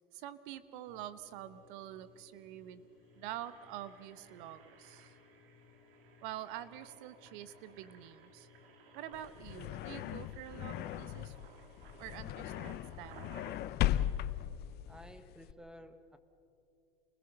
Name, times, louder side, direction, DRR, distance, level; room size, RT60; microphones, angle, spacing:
voice 1, 0.1-2.9 3.2-5.1 6.2-8.5 8.9-11.5 12.0-13.4, right 12 dB, 60° right, 13 dB, 1.3 m, -46 dB
sound 1, 0.9-15.1, left 7 dB, 50° left, 2.1 m, -63 dB
Engine, 1.9-2.0 2.2-2.4 2.9-13.6, right 6 dB, 75° right, 2.9 m, -59 dB
sound 2, 9.1-15.5, left 13 dB, 35° left, 0.7 m, -37 dB
voice 2, 14.9-16.2, equal, 5° right, 10 dB, 1.3 m, -53 dB
28.5 x 20.5 x 5.6 m, 2.6 s
hypercardioid pair, 120°, 29 cm